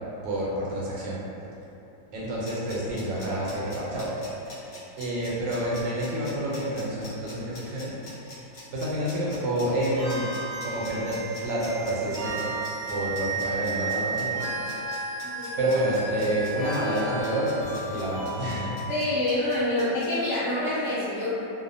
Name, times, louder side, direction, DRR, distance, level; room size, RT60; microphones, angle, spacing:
voice 1, 0.2-1.2 2.1-4.1 5.0-7.9 8.7-10.3 10.6-12.5 12.9-14.4 15.6-18.7, right 1 dB, 80° right, -6 dB, 1.3 m, -28 dB
sound 1, 2.2-20.1, left 2 dB, 50° left, 0.9 m, -46 dB
sound 2, 10.0-18.7, right 3 dB, 25° right, 0.8 m, -34 dB
voice 2, 15.2-15.6 18.9-21.4, left 1 dB, 80° left, -11 dB, 0.7 m, -27 dB
3.1 x 2.1 x 2.6 m, 2.9 s
omnidirectional pair, 1.9 m